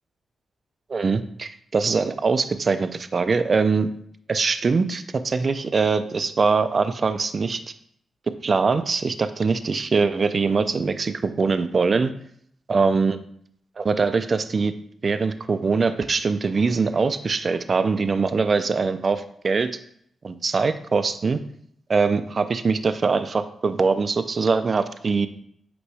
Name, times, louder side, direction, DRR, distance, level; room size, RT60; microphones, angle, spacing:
voice 1, 0.9-3.9 4.3-7.6 8.4-12.1 12.7-13.2 13.8-14.7 15.0-19.7 20.2-21.4 21.9-25.3, right 4 dB, 45° right, 10 dB, 0.5 m, -22 dB
8.2 x 3.0 x 4.8 m, 0.66 s
cardioid pair, 80°, 0 cm